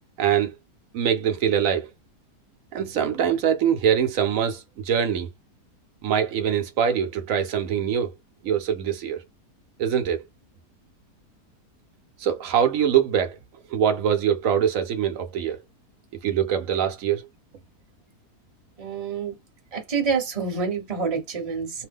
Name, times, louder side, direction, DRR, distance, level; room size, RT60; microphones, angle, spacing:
voice 1, 0.2-0.5 0.9-1.9 2.7-5.3 6.0-8.1 8.4-9.2 9.8-10.2 12.2-13.4 13.7-15.6 16.2-17.3, right 8 dB, 65° right, 0.9 m, -23 dB
voice 2, 18.8-19.4 19.7-21.9, right 5 dB, 25° right, 0.9 m, -27 dB
2.8 x 2.1 x 3.4 m
omnidirectional pair, 1.8 m